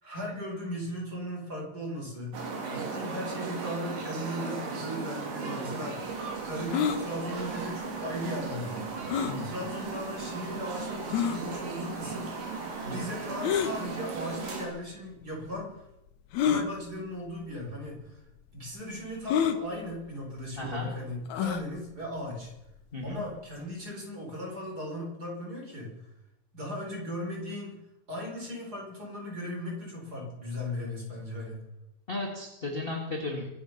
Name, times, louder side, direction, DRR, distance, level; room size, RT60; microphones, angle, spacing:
voice 1, 0.0-2.3 2.7-6.0 6.4-8.9 9.4-12.4 12.8-15.8 16.4-18.2 18.5-22.5 23.0-25.9 26.5-27.8 28.1-31.6, left 1 dB, 25° right, -1 dB, 5.2 m, -37 dB
sound 1, 2.3-14.7, right 4 dB, 70° right, 4.5 m, -36 dB
sound 2, 6.7-7.0 9.1-9.4 10.2-10.3 11.1-11.4 13.4-13.7 14.8-14.9 16.3-16.7 17.6-17.7 18.0-18.1 19.3-19.6 21.3-21.7, left 8 dB, 65° left, 2.1 m, -27 dB
voice 2, 20.6-20.9 22.9-23.2 32.1-33.5, left 2 dB, 20° left, 0 dB, 1.6 m, -34 dB
25.0 x 9.7 x 6.0 m, 0.87 s
omnidirectional pair, 4.1 m